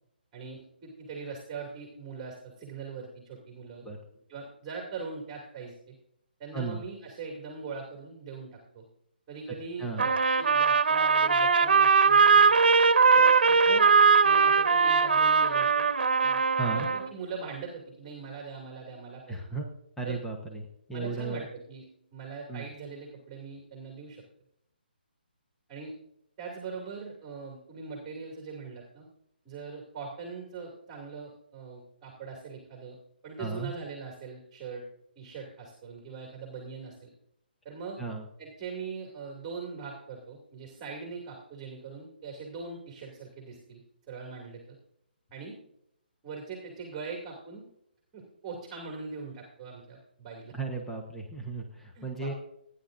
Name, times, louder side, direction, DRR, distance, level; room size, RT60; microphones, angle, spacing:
voice 1, 0.3-3.9 4.3-5.9 6.4-8.8 9.3-12.4 13.1-13.9 14.2-15.9 16.2-16.4 16.7-19.4 20.0-20.2 20.9-21.9 22.1-24.2 25.7-25.9 26.4-29.1 29.4-33.0 33.2-34.8 35.2-37.1 37.6-38.0 38.4-43.8 44.1-44.6 45.3-45.6 46.2-47.6 48.1-50.5 51.9-52.3, right 4 dB, 15° right, -1 dB, 2.4 m, -41 dB
voice 2, 6.5-6.8 9.8-10.1 16.6-16.9 19.3-19.7 20.0-21.5 22.5-22.6 33.4-33.7 38.0-38.3 50.5-52.3, right 4 dB, 5° left, 0 dB, 0.9 m, -35 dB
Trumpet, 10.0-17.1, right 5 dB, 65° right, 1.1 m, -21 dB
29.5 x 10.0 x 2.6 m, 0.80 s
hypercardioid pair, 170°, 6 cm